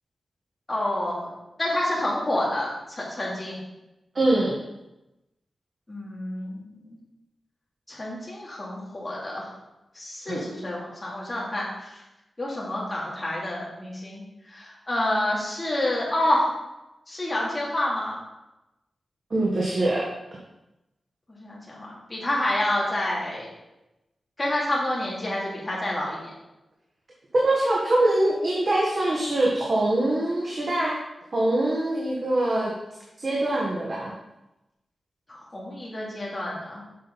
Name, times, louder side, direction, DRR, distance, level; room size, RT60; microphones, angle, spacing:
voice 1, 0.7-1.3 1.6-3.6 5.9-7.0 7.9-9.5 9.9-12.0 12.4-16.5 17.1-18.2 21.3-23.5 24.4-26.2 35.3-36.8, left 1 dB, 25° left, -5 dB, 2.9 m, -28 dB
voice 2, 4.1-4.5 10.3-10.4 19.3-20.1 27.3-31.0 31.3-32.7 33.2-34.1, right 1 dB, 45° right, -4 dB, 1.4 m, -23 dB
7.9 x 6.4 x 4.1 m, 0.95 s
wide cardioid pair, 120°, 0 cm